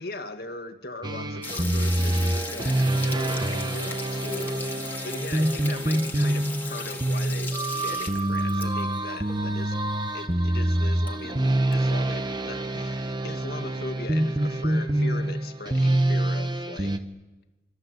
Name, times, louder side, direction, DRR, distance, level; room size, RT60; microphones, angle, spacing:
voice 1, 0.0-9.8 10.1-17.0, left 2 dB, 60° left, 6 dB, 2.1 m, -39 dB
sound 1, 1.0-17.0, right 1 dB, 25° right, 1.1 m, -26 dB
sound 2, 1.4-8.9 9.3-9.4 9.6-9.7 10.3-10.4 10.7-11.7, left 3 dB, 10° left, 2.0 m, -37 dB
28.0 x 24.0 x 7.9 m, 1.1 s
head